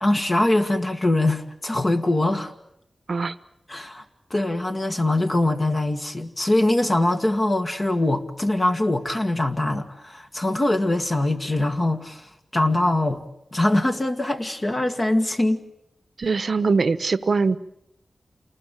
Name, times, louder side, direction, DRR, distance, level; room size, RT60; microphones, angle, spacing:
voice 1, 0.0-2.5 3.7-4.0 4.3-13.2 13.5-15.6, left 1 dB, 30° left, 1.7 m, -23 dB
voice 2, 16.2-17.6, right 4 dB, 60° right, 1.0 m, -22 dB
28.5 x 20.0 x 9.0 m
wide cardioid pair, 110°, 0 cm